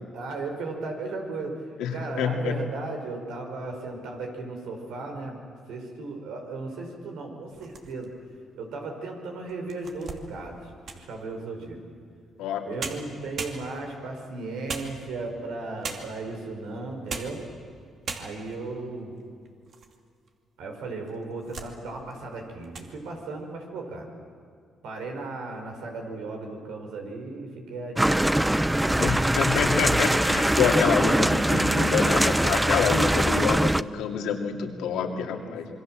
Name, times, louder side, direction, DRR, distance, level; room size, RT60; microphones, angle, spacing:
voice 1, 0.1-1.6 1.9-5.4 5.7-8.1 8.6-11.8 12.6-17.4 18.2-19.1 20.6-24.1 24.8-28.4 28.9-29.3 32.5-34.2 34.8-35.8, right 3 dB, 85° right, 2 dB, 5.1 m, -36 dB
voice 2, 1.8-2.6 12.4-12.7 29.0-35.7, left 7 dB, 90° left, 3 dB, 2.5 m, -27 dB
sound 1, 7.5-8.2 8.8-8.9 9.5-11.2 12.4-12.5 12.8-14.0 14.7-15.4 15.8-16.3 16.9-17.5 17.7-17.8 18.0-18.6 19.2-20.0 20.3-20.4 21.1-21.8 22.1-22.3 22.6-22.9, right 4 dB, 55° right, 2.5 m, -38 dB
sound 2, 28.0-33.8, right 1 dB, 10° right, 0.6 m, -22 dB
27.0 x 22.5 x 7.6 m, 2.3 s
cardioid pair, 90°, 0 cm